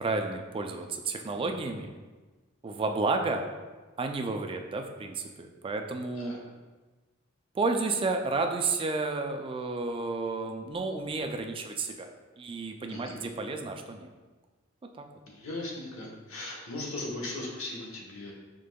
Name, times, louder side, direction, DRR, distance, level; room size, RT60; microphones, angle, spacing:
voice 1, 0.0-1.9 2.6-3.4 4.0-6.4 7.5-14.1 14.9-15.0, right 3 dB, 25° right, 4 dB, 0.3 m, -31 dB
voice 2, 15.3-18.3, left 2 dB, 85° left, -2 dB, 1.0 m, -38 dB
5.0 x 3.7 x 2.2 m, 1.3 s
head